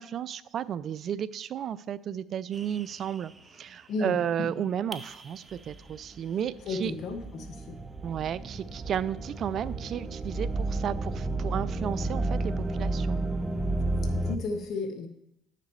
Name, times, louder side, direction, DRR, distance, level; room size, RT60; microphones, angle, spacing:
voice 1, 0.0-6.9 8.0-13.2, right 9 dB, 55° right, 17 dB, 0.3 m, -33 dB
sound 1, 2.5-3.2 4.9-14.4, right 2 dB, 20° right, 0.7 m, -32 dB
voice 2, 3.9-4.5 6.7-7.8 14.1-15.1, left 3 dB, 65° left, 6 dB, 1.1 m, -33 dB
10.5 x 6.6 x 3.2 m, 0.82 s
supercardioid pair, 80°, 0 cm